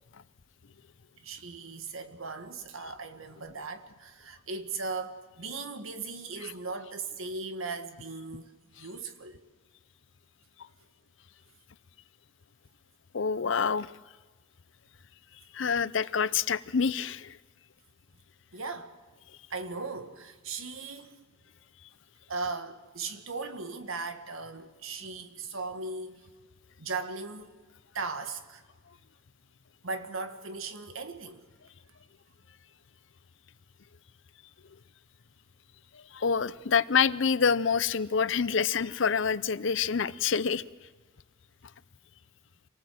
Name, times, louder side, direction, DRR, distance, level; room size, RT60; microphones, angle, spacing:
voice 1, 1.2-8.5 8.8-9.4 18.5-18.9 19.5-21.2 22.3-26.2 26.8-27.5 27.9-28.6 29.8-31.4, right 4 dB, 85° right, 1.8 m, -38 dB
voice 2, 13.1-13.9 15.5-17.4 36.1-40.6, left 6 dB, 65° left, 0.6 m, -27 dB
26.5 x 19.0 x 7.7 m
head